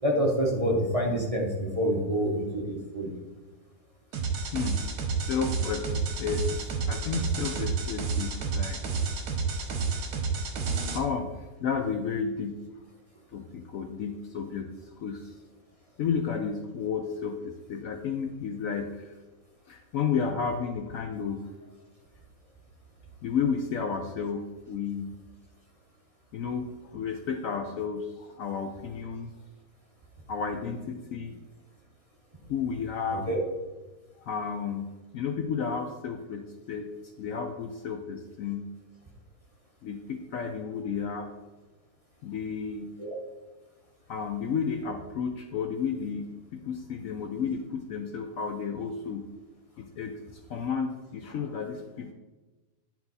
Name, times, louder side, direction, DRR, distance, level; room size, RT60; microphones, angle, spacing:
voice 1, 0.0-3.1 33.3-33.4 43.0-43.1, equal, 25° right, -2 dB, 0.8 m, -27 dB
sound 1, 4.1-11.0, right 4 dB, 65° right, 1.5 m, -30 dB
voice 2, 4.5-4.8 5.1-6.5 6.9-8.8 10.9-12.6 13.3-15.4 16.0-19.1 19.7-21.5 23.2-25.2 26.3-29.3 30.3-31.4 32.5-33.3 34.2-36.9 37.2-38.7 39.8-41.3 42.2-42.9 44.1-49.3 49.8-52.1, left 6 dB, 70° left, 5 dB, 0.8 m, -32 dB
10.0 x 4.5 x 4.0 m, 1.2 s
omnidirectional pair, 1.8 m